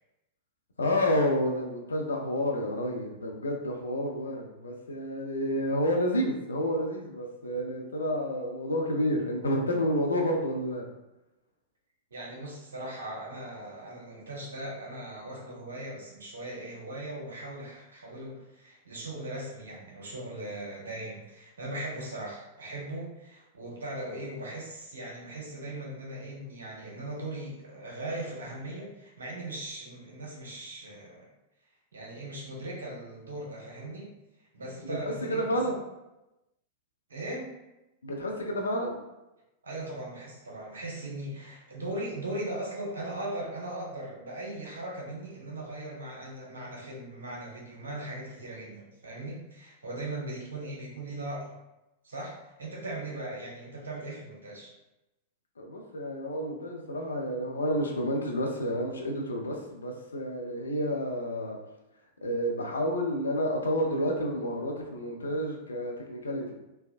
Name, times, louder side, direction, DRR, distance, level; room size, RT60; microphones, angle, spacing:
voice 1, 0.8-10.9 34.8-35.8 38.0-39.0 55.6-61.6 62.2-66.5, equal, 80° left, 1 dB, 0.5 m, -30 dB
voice 2, 12.1-31.2 31.9-34.1 34.5-35.7 37.1-37.5 39.6-51.5 52.0-54.7, right 1 dB, 75° right, -3 dB, 0.9 m, -39 dB
3.3 x 2.1 x 2.5 m, 0.97 s
figure-of-eight pair, 95°, 0 cm